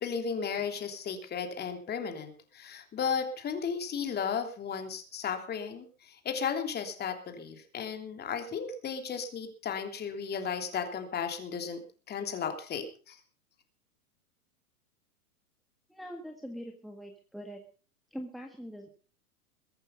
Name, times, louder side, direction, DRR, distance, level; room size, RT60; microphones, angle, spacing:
voice 1, 0.0-11.8 12.1-13.2, left 6 dB, 20° left, 5 dB, 3.0 m, -34 dB
voice 2, 15.9-17.6 18.1-18.9, equal, ahead, 2 dB, 1.7 m, -43 dB
22.0 x 8.9 x 5.5 m, 0.41 s
hypercardioid pair, 115°, 45 cm